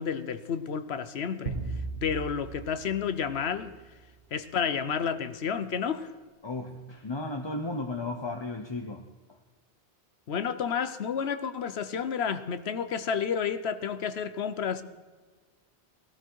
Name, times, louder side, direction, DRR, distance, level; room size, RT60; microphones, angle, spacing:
voice 1, 0.0-1.6 2.0-3.7 4.3-6.1 10.3-14.8, left 7 dB, 70° left, 12 dB, 1.0 m, -30 dB
sound 1, 1.5-4.0, right 4 dB, 75° right, 1.6 m, -37 dB
voice 2, 6.4-9.1, left 2 dB, 25° left, 3 dB, 0.7 m, -34 dB
18.0 x 13.5 x 4.6 m, 1.4 s
omnidirectional pair, 1.1 m